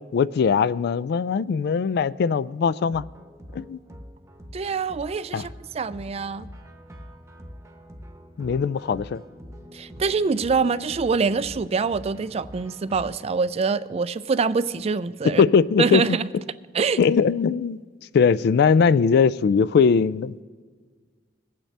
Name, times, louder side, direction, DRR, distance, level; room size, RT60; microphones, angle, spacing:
voice 1, 0.1-3.0 3.5-3.8 5.3-5.4 8.4-9.2 15.4-16.2 17.0-17.8 18.1-20.4, left 6 dB, 60° left, 0.3 m, -20 dB
sound 1, 2.8-13.2, equal, 15° right, 0.9 m, -44 dB
voice 2, 4.5-5.5 5.7-6.5 9.7-15.4 15.8-16.3 16.7-17.0, right 4 dB, 35° right, 0.4 m, -25 dB
22.0 x 8.9 x 3.3 m
head